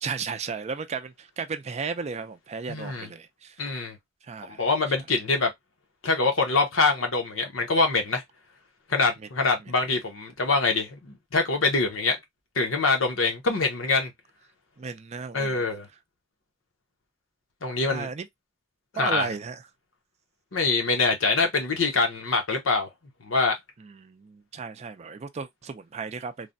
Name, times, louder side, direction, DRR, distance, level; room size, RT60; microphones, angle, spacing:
voice 1, 0.0-3.6 4.2-4.7 14.8-15.6 17.9-18.3 18.9-19.6 23.8-26.5, right 5 dB, 35° right, 0.4 m, -34 dB
voice 2, 2.7-3.1 3.6-4.0 4.6-5.5 6.0-8.2 8.9-12.2 12.6-14.1 15.3-15.9 17.6-18.1 18.9-19.3 20.5-22.9 23.2-23.6, left 3 dB, 85° left, 0.9 m, -24 dB
3.2 x 2.1 x 2.5 m
head